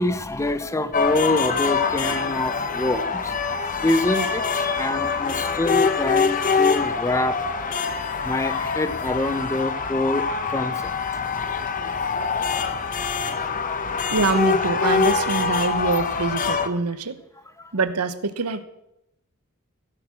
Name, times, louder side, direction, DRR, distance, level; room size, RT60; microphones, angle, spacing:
voice 1, 0.0-3.3 3.8-7.6 8.2-10.9 13.4-14.1 17.6-17.7, left 2 dB, 15° left, 13 dB, 0.6 m, -26 dB
sound 1, 0.9-16.7, left 5 dB, 35° left, 0.9 m, -24 dB
voice 2, 14.1-17.2 17.7-18.6, right 3 dB, 85° right, 12 dB, 1.0 m, -25 dB
15.5 x 8.4 x 6.3 m, 0.87 s
head